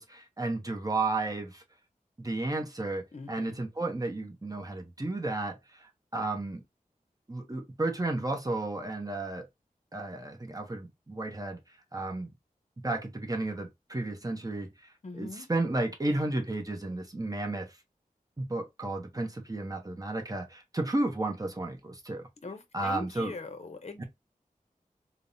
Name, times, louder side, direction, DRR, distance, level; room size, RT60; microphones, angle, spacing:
voice 1, 0.0-1.6 2.2-6.6 7.3-9.5 9.9-11.6 11.9-12.3 12.8-14.7 15.1-17.7 18.4-22.3 22.7-23.3 24.0-24.1, right 2 dB, 25° right, 0.7 m, -33 dB
voice 2, 3.1-3.6 15.0-15.5 22.4-24.0, left 3 dB, 50° left, 0.6 m, -41 dB
3.4 x 2.0 x 2.6 m
wide cardioid pair, 65°, 15 cm